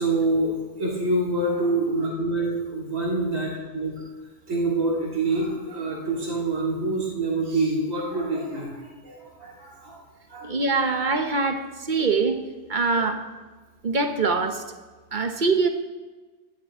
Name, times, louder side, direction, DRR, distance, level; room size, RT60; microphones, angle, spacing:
voice 1, 0.0-3.9 4.5-10.0 10.3-10.8 12.9-13.0, right 2 dB, 85° right, -4 dB, 3.2 m, -26 dB
voice 2, 10.4-12.4 12.7-13.2 13.8-14.6 15.1-15.7, right 4 dB, 40° right, 6 dB, 1.0 m, -23 dB
17.0 x 12.0 x 3.7 m, 1.3 s
omnidirectional pair, 1.3 m